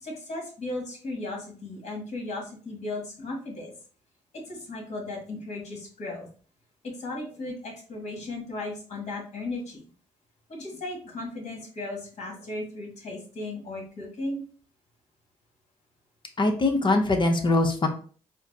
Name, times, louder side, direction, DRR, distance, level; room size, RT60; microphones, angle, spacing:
voice 1, 0.0-3.7 4.3-6.3 7.0-9.8 10.5-14.4, left 2 dB, 55° left, 0 dB, 1.6 m, -36 dB
voice 2, 16.4-17.9, left 2 dB, 35° left, 5 dB, 0.8 m, -22 dB
4.2 x 2.0 x 2.7 m, 0.41 s
supercardioid pair, 60°, 14 cm